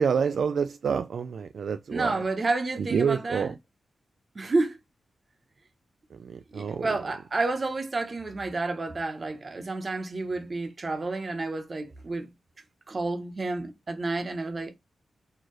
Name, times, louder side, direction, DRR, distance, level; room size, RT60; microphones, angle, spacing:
voice 1, 0.0-2.2 2.9-3.5 6.2-6.9, right 6 dB, 70° right, 0.3 m, -27 dB
voice 2, 1.9-3.5 4.3-4.8 6.5-12.3 12.9-14.7, right 3 dB, 35° right, 0.9 m, -30 dB
4.5 x 2.9 x 3.1 m
wide cardioid pair, 145°, 0 cm